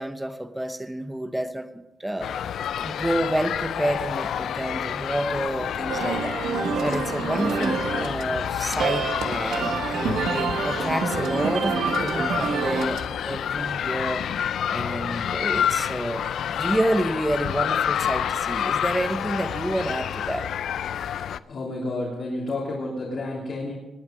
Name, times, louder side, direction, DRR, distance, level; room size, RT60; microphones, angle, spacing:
voice 1, 0.0-2.3 2.8-9.8 10.3-14.2 14.7-20.5, right 1 dB, 5° right, 10 dB, 0.8 m, -29 dB
sound 1, 2.2-21.4, left 9 dB, 80° left, 0.4 m, -28 dB
sound 2, 5.9-13.1, right 5 dB, 90° right, 1.3 m, -27 dB
voice 2, 21.5-23.7, left 2 dB, 55° left, -5 dB, 3.2 m, -30 dB
20.5 x 8.4 x 5.3 m, 1.0 s
wide cardioid pair, 145°, 0 cm